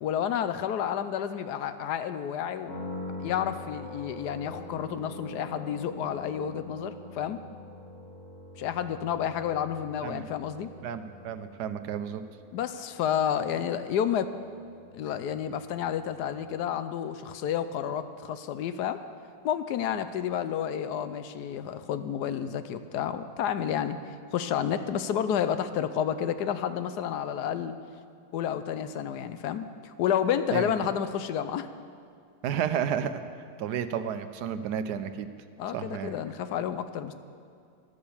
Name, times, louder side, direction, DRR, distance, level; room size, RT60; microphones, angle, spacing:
voice 1, 0.0-2.7 3.2-7.4 8.6-10.7 12.5-14.3 14.9-19.0 19.4-27.7 28.3-31.7 35.6-37.1, left 9 dB, 75° left, 11 dB, 1.2 m, -30 dB
sound 1, 2.7-16.5, left 2 dB, 50° left, 3.3 m, -45 dB
voice 2, 10.8-12.2 30.5-30.7 32.4-33.2 33.6-35.3 35.7-36.1, right 8 dB, 75° right, 10 dB, 1.2 m, -31 dB
13.0 x 11.5 x 7.1 m, 2.3 s
omnidirectional pair, 1.8 m